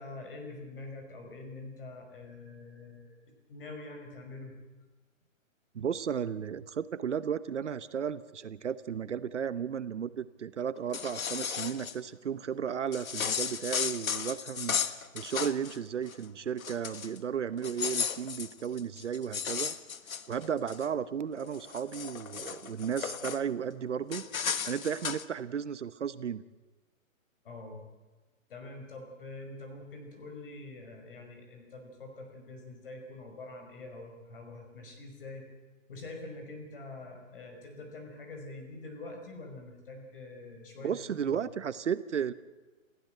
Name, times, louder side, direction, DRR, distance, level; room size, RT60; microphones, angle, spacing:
voice 1, 0.0-3.2 3.5-4.6 27.4-27.8 28.5-35.5 35.9-41.4, left 2 dB, 40° left, 4 dB, 5.5 m, -45 dB
voice 2, 5.7-14.8 15.1-19.7 20.3-24.2 24.7-26.4 40.8-42.3, right 7 dB, 60° right, 14 dB, 1.0 m, -34 dB
sound 1, 10.8-11.9 12.9-15.8 16.1-16.2 16.6-17.2 17.6-20.9 21.4-23.4 24.1-25.2, left 7 dB, 80° left, 1.5 m, -35 dB
29.0 x 15.0 x 7.8 m, 1.2 s
hypercardioid pair, 180°, 41 cm